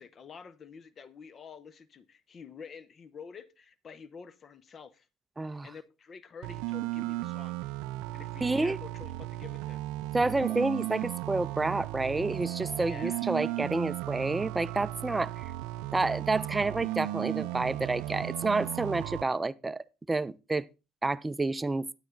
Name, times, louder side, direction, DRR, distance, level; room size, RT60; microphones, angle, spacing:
voice 1, 0.0-5.1 5.4-7.6 8.1-9.9 12.8-13.2, left 6 dB, 40° left, 0.8 m, -48 dB
voice 2, 5.4-5.7 8.4-8.8 10.1-15.4 15.9-20.7 21.0-21.9, right 3 dB, 15° right, 0.5 m, -29 dB
sound 1, 6.4-19.2, right 17 dB, 75° right, 0.4 m, -35 dB
9.6 x 9.2 x 3.8 m
hypercardioid pair, 75°, 0 cm